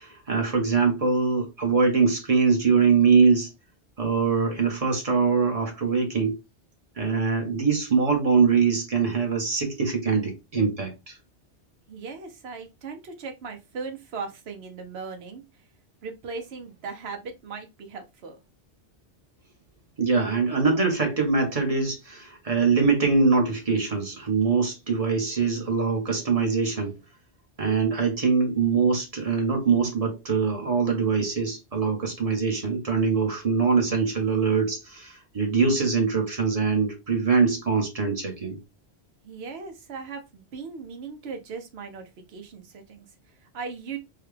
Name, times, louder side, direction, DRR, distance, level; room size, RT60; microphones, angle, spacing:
voice 1, 0.0-3.5 4.0-6.4 7.0-11.2 20.0-26.9 27.6-38.6, right 5 dB, 35° right, 1.0 m, -23 dB
voice 2, 11.9-15.4 16.0-18.4 39.2-44.0, right 5 dB, 65° right, 1.1 m, -38 dB
3.8 x 2.3 x 3.2 m
omnidirectional pair, 1.2 m